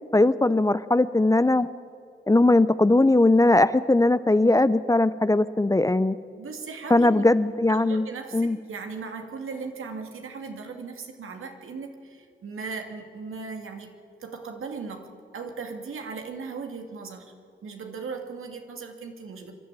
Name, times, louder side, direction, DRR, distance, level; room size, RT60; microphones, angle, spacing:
voice 1, 0.1-1.7 2.3-6.2 6.9-8.1 8.3-8.6, left 2 dB, 15° left, 15 dB, 0.7 m, -20 dB
voice 2, 6.4-7.2 7.7-13.9 14.2-15.1 15.3-17.3 17.6-19.5, right 4 dB, 75° right, 4 dB, 2.2 m, -37 dB
25.5 x 12.0 x 9.0 m, 2.3 s
cardioid pair, 50°, 21 cm